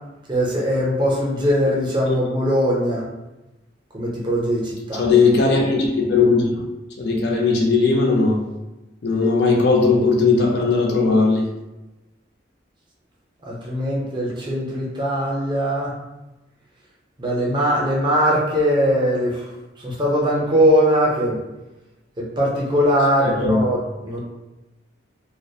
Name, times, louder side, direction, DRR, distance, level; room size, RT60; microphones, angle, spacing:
voice 1, 0.3-3.1 3.9-5.0 13.5-15.9 17.2-19.5 19.8-21.4 22.2-24.2, equal, 25° right, -4 dB, 0.5 m, -20 dB
voice 2, 4.9-6.6 7.0-8.4 9.0-11.5 23.4-23.6, left 4 dB, 65° left, 0 dB, 0.4 m, -18 dB
2.3 x 2.1 x 2.6 m, 1.0 s
head